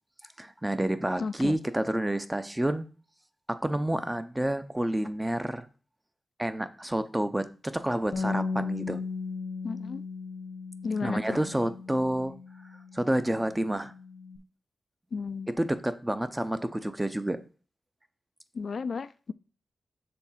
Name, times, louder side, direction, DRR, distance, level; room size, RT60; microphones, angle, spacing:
voice 1, 0.4-2.9 3.5-5.7 6.4-9.0 11.0-12.3 12.9-13.9 15.5-17.4, right 1 dB, 10° right, 0.6 m, -29 dB
voice 2, 1.2-1.5 9.6-10.0 10.8-11.2 15.1-15.5 18.6-19.3, left 5 dB, 55° left, 0.3 m, -33 dB
Bass guitar, 8.1-14.4, left 4 dB, 80° left, 0.9 m, -36 dB
6.9 x 3.6 x 5.7 m
wide cardioid pair, 95°, 0 cm